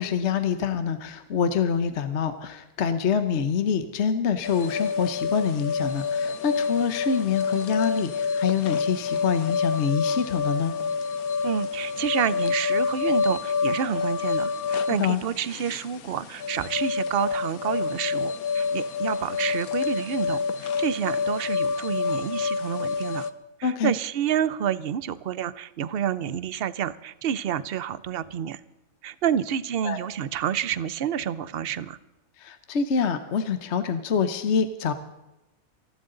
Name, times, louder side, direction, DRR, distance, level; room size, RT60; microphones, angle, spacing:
voice 1, 0.0-10.7 15.0-15.2 23.6-23.9 29.8-30.0 32.4-34.9, left 6 dB, 55° left, 10 dB, 1.2 m, -26 dB
sound 1, 4.4-23.3, left 5 dB, 85° left, 1.4 m, -28 dB
voice 2, 11.4-23.3 23.6-28.6 29.0-32.0, right 9 dB, 50° right, 17 dB, 0.8 m, -29 dB
28.5 x 12.0 x 3.9 m, 0.99 s
omnidirectional pair, 1.5 m